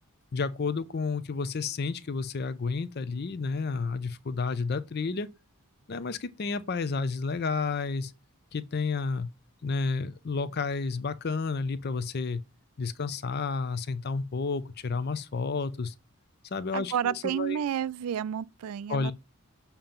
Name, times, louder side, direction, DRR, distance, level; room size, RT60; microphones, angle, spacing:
voice 1, 0.3-5.3 5.9-8.1 8.5-9.3 9.6-12.4 12.8-15.9 16.5-17.6 18.9-19.1, left 4 dB, 45° left, 0.5 m, -31 dB
voice 2, 16.7-19.1, right 9 dB, 80° right, 0.3 m, -30 dB
7.2 x 2.9 x 5.1 m
head